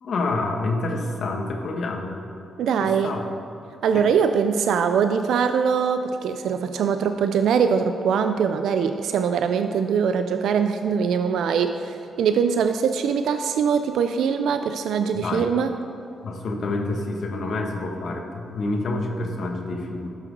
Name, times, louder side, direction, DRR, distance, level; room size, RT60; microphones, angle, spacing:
voice 1, 0.0-2.3 2.8-3.2 3.9-4.1 15.1-15.5 16.2-20.1, left 2 dB, 65° left, 2 dB, 1.2 m, -28 dB
voice 2, 2.6-3.2 3.8-15.7, right 6 dB, 80° right, 8 dB, 0.3 m, -22 dB
12.5 x 6.0 x 3.9 m, 2.9 s
cardioid pair, 90°, 0 cm